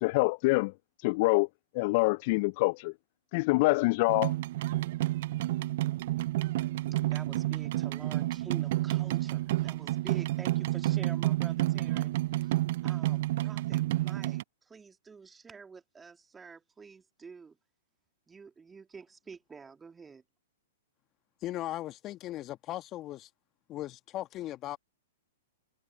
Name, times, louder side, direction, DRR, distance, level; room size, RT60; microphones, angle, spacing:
voice 1, 0.0-0.7 1.0-1.5 1.7-2.9 3.3-4.3, left 25 dB, 45° left, 0.4 m, -25 dB
sound 1, 4.1-14.4, right 16 dB, 55° right, 0.4 m, -30 dB
voice 2, 7.1-17.6 18.3-20.2, right 5 dB, 15° right, 2.8 m, -49 dB
voice 3, 21.4-23.3 23.7-24.8, left 14 dB, 30° left, 1.5 m, -38 dB
hypercardioid pair, 115°, 0 cm